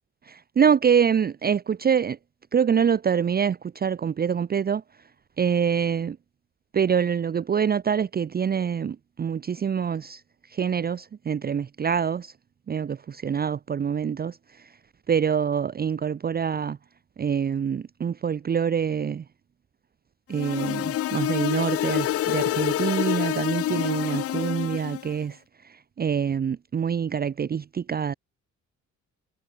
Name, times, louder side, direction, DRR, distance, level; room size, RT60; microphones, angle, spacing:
voice 1, 0.3-2.2 2.5-4.8 5.4-6.2 6.7-10.2 10.5-12.3 12.7-14.4 15.1-16.8 17.2-19.2 20.3-25.4 25.6-28.1, right 7 dB, 30° right, 0.6 m, -25 dB
sound 1, 20.3-25.1, left 13 dB, 50° left, 0.5 m, -27 dB
cardioid pair, 90°, 30 cm